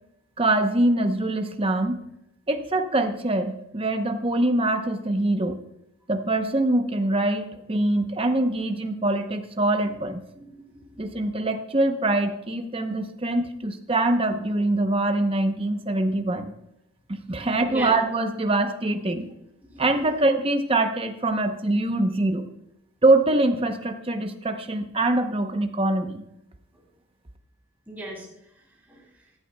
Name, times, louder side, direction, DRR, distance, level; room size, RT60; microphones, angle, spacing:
voice 1, 0.4-2.0 2.5-5.6 6.1-10.2 11.0-16.5 17.3-19.3 19.8-22.5 23.0-26.2, right 2 dB, 25° right, 6 dB, 0.7 m, -24 dB
voice 2, 10.3-11.1 17.3-17.9 19.7-19.9 27.9-28.3 28.9-29.0, right 1 dB, 10° right, -3 dB, 2.8 m, -38 dB
15.5 x 11.0 x 2.2 m, 0.82 s
head